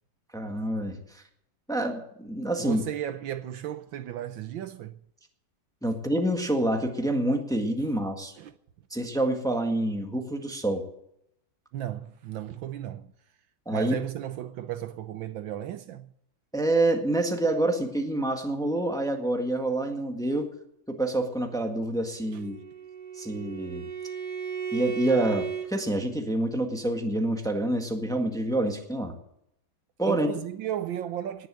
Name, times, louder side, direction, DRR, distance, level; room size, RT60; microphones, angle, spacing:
voice 1, 0.3-1.2 1.7-2.8 5.8-8.3 8.9-10.8 13.6-13.9 16.5-20.5 20.9-22.6 23.1-23.8 24.7-29.1 30.0-30.3, right 1 dB, ahead, 1.5 m, -27 dB
voice 2, 2.6-5.0 8.4-8.5 11.7-13.1 13.7-16.1 22.3-22.4 30.1-31.5, right 11 dB, 70° right, 1.4 m, -35 dB
Bowed string instrument, 22.2-25.7, right 7 dB, 50° right, 2.9 m, -35 dB
19.0 x 7.2 x 7.7 m
omnidirectional pair, 2.3 m